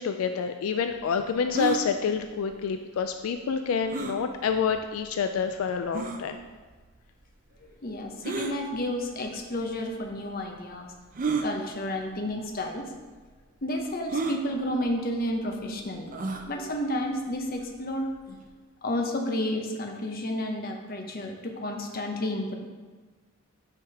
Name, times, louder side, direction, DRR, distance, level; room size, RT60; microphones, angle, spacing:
voice 1, 0.0-6.4, left 6 dB, 75° left, 7 dB, 0.3 m, -28 dB
sound 1, 1.5-1.8 3.9-4.2 5.0-5.1 5.9-6.2 8.2-8.5 9.6-9.7 11.1-11.5 12.4-12.5 12.8-12.9 14.1-14.4 16.1-16.5, right 4 dB, 40° right, 0.4 m, -30 dB
voice 2, 7.8-10.9 11.4-12.8 13.6-16.2 16.5-18.4 18.8-22.6, left 1 dB, 40° left, 3 dB, 0.7 m, -31 dB
6.9 x 3.5 x 4.8 m, 1.4 s
head